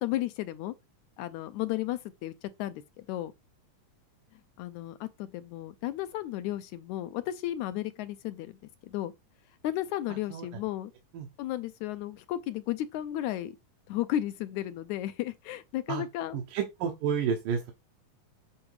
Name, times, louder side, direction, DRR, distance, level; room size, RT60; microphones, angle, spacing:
voice 1, 0.0-0.7 1.2-2.3 2.6-3.3 4.6-8.6 8.8-9.1 9.6-10.9 11.4-13.5 13.9-16.4, left 13 dB, 75° left, 1.8 m, -34 dB
voice 2, 16.3-17.7, right 7 dB, 85° right, 2.7 m, -30 dB
8.8 x 4.8 x 4.8 m
omnidirectional pair, 3.8 m